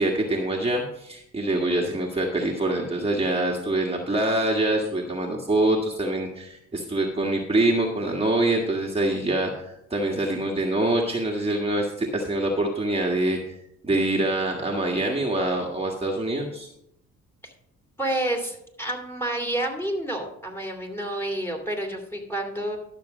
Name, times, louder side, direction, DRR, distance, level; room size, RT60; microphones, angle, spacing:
voice 1, 0.0-13.6 13.8-16.7, right 1 dB, 20° right, -1 dB, 1.6 m, -25 dB
voice 2, 18.0-22.8, right 1 dB, 10° left, 1 dB, 2.6 m, -29 dB
12.0 x 6.8 x 5.0 m, 0.77 s
cardioid pair, 90°, 30 cm